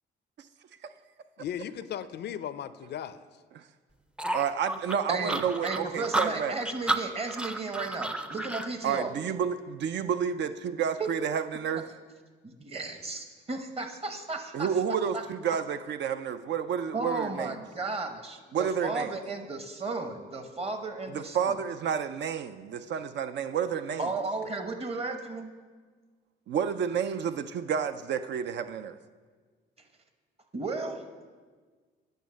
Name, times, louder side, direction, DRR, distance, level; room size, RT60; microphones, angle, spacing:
voice 1, 1.4-3.2 24.2-24.6, left 10 dB, 60° left, 14 dB, 0.4 m, -37 dB
sound 1, 4.2-8.7, right 2 dB, 5° right, 0.4 m, -31 dB
voice 2, 4.3-6.6 8.8-11.9 14.5-17.6 18.5-19.1 21.1-24.1 26.5-29.0, right 7 dB, 60° right, 10 dB, 0.4 m, -30 dB
voice 3, 5.1-9.1 11.0-11.1 12.4-14.7 15.1-15.2 16.9-21.6 24.0-25.5 30.5-31.3, right 3 dB, 30° right, 6 dB, 1.0 m, -34 dB
9.1 x 5.4 x 6.3 m, 1.5 s
cardioid pair, 90°, 20 cm